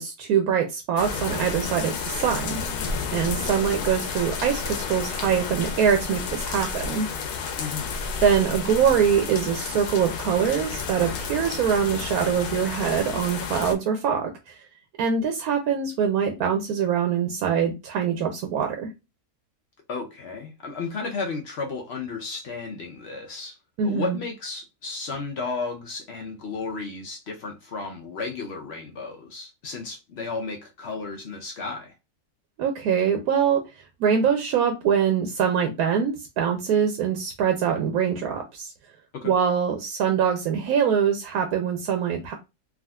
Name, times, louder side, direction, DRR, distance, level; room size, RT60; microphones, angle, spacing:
voice 1, 0.0-2.6 3.1-7.1 8.2-14.6 15.0-18.9 23.8-24.2 32.6-33.6 34.0-38.7 39.2-42.3, right 7 dB, 75° right, 1.0 m, -23 dB
sound 1, 1.0-13.8, left 5 dB, 85° left, 1.1 m, -31 dB
voice 2, 7.6-7.9 19.9-23.6 23.8-31.9 39.1-39.3, left 4 dB, 60° left, 0.7 m, -33 dB
3.5 x 2.5 x 2.2 m
omnidirectional pair, 1.6 m